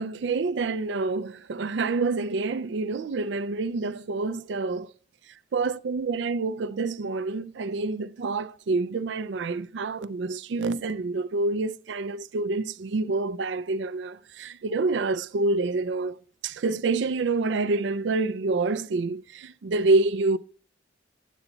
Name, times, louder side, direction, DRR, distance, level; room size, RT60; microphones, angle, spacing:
voice 1, 0.0-4.9 5.5-16.2 16.4-20.4, right 3 dB, 70° right, 0.4 m, -27 dB
10.0 x 8.2 x 3.9 m
head